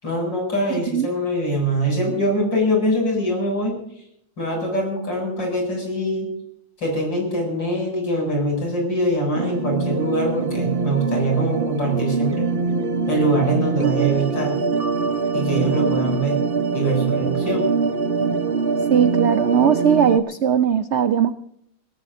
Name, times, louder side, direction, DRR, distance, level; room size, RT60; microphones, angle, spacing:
voice 1, 0.0-3.8 4.4-6.3 6.8-12.6 13.1-14.6 15.3-16.4 16.7-17.8, right 1 dB, 70° left, 1 dB, 8.2 m, -23 dB
sound 1, 9.3-20.2, right 4 dB, 40° right, 1.0 m, -23 dB
voice 2, 18.9-21.3, right 8 dB, 75° right, 11 dB, 0.6 m, -18 dB
26.5 x 18.0 x 2.7 m, 0.73 s
omnidirectional pair, 2.0 m